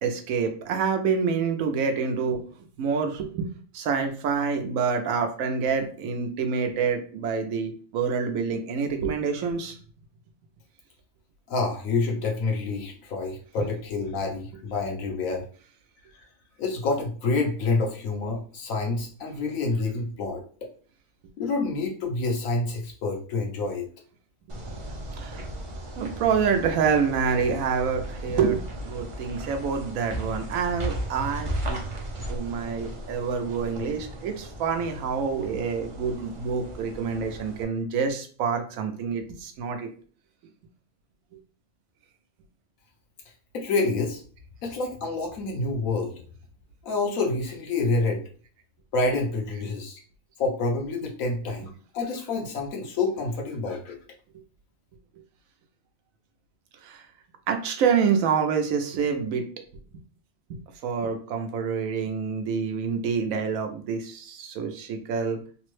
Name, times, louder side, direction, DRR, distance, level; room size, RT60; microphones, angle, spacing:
voice 1, 0.0-2.4 2.8-3.5 3.7-9.7 25.2-25.4 26.0-31.8 32.3-39.9 56.8-57.0 57.5-59.5 60.5-65.4, right 6 dB, 85° right, 5 dB, 1.0 m, -27 dB
voice 2, 11.5-15.4 16.6-20.4 21.4-23.9 43.5-44.2 44.6-46.1 46.8-48.2 48.9-50.0 50.4-54.0, left 3 dB, 85° left, 1 dB, 1.2 m, -28 dB
sound 1, 24.5-37.6, right 1 dB, 50° right, 0.3 m, -36 dB
3.4 x 2.0 x 3.1 m, 0.43 s
omnidirectional pair, 1.4 m